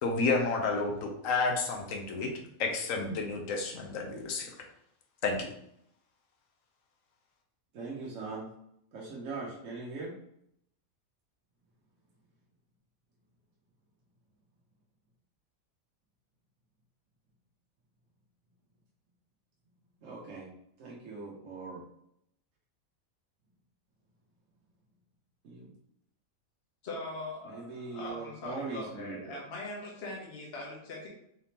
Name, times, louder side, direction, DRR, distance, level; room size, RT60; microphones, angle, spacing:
voice 1, 0.0-2.3 2.6-4.5 5.2-5.5, left 3 dB, 70° left, 2 dB, 1.1 m, -30 dB
voice 2, 7.7-8.5 8.9-10.1 20.0-20.5 20.8-21.8 25.4-25.7 27.4-29.4, right 3 dB, 65° right, -4 dB, 1.2 m, -40 dB
voice 3, 26.8-31.1, left 2 dB, 50° left, -3 dB, 1.1 m, -41 dB
4.1 x 3.4 x 2.8 m, 0.74 s
omnidirectional pair, 1.5 m